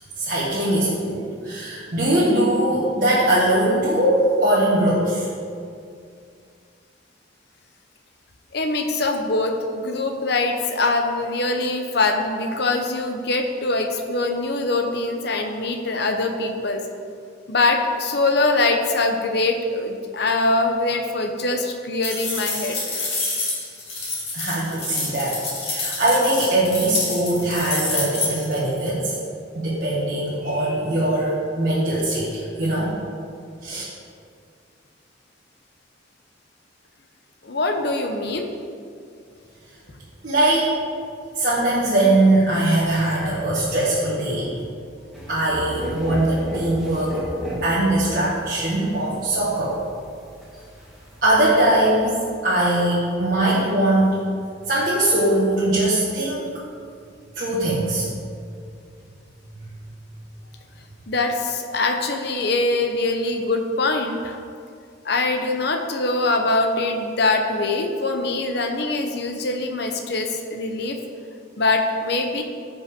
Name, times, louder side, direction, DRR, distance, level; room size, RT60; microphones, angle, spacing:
voice 1, 0.2-5.3 24.3-25.4 25.6-29.1 29.5-32.9 33.6-33.8 40.2-40.8 41.3-44.5 45.3-47.2 47.6-49.8 51.2-52.2 52.4-54.1 54.7-56.5 57.3-58.0 59.6-59.7, right 1 dB, 50° right, -9 dB, 1.6 m, -21 dB
voice 2, 8.5-16.8 17.5-22.8 37.4-38.5 61.1-64.4 65.0-71.0 71.6-72.4, left 2 dB, 55° left, 4 dB, 0.9 m, -23 dB
sound 1, 22.0-28.6, left 3 dB, 30° left, 2.2 m, -28 dB
sound 2, 45.1-51.4, equal, ahead, 1.9 m, -33 dB
15.0 x 5.3 x 3.7 m, 2.3 s
head